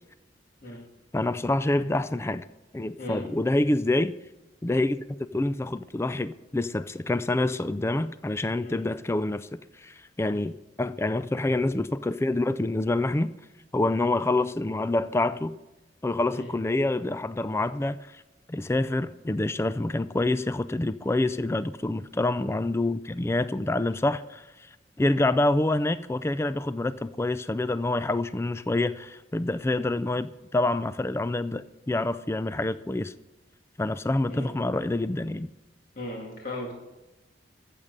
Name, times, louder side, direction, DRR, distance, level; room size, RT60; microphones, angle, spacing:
voice 1, 1.1-2.5 2.7-4.1 4.6-5.0 5.3-13.3 13.7-15.6 16.0-18.2 18.5-24.7 25.0-33.1 33.8-35.5, left 2 dB, 15° left, 0.3 m, -27 dB
voice 2, 36.0-36.7, left 1 dB, 50° left, 2.0 m, -37 dB
15.0 x 7.4 x 5.3 m
head